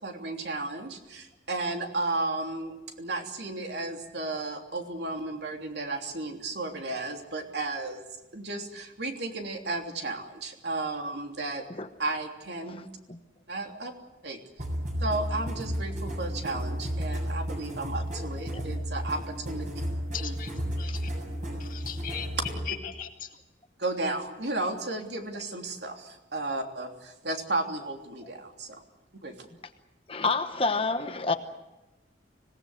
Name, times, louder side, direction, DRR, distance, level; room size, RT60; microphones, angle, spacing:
voice 1, 0.0-8.0 8.3-11.7 12.0-12.9 13.5-13.9 14.2-14.4 15.0-19.7 20.2-20.3 23.8-28.8 29.2-29.5, right 2 dB, 65° right, 3.2 m, -33 dB
sound 1, 14.6-22.6, equal, 40° right, 7.2 m, -33 dB
voice 2, 20.1-21.1 21.6-22.3 22.7-23.4, left 9 dB, 45° left, 2.1 m, -39 dB
voice 3, 30.1-31.3, left 3 dB, 30° left, 1.0 m, -28 dB
25.5 x 18.0 x 8.0 m
head